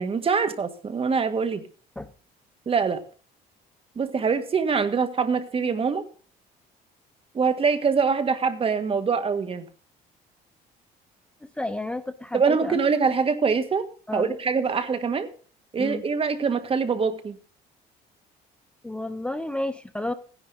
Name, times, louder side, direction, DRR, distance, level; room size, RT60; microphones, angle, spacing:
voice 1, 0.0-1.6 2.7-3.0 4.0-6.0 7.3-9.7 12.3-13.9 14.1-15.3 15.7-17.4, right 5 dB, 35° right, 10 dB, 1.7 m, -24 dB
voice 2, 11.6-12.8 14.1-14.4 15.8-16.0 18.8-20.1, left 2 dB, 5° left, 11 dB, 0.7 m, -31 dB
16.0 x 10.5 x 3.9 m, 0.40 s
cardioid pair, 110°, 17 cm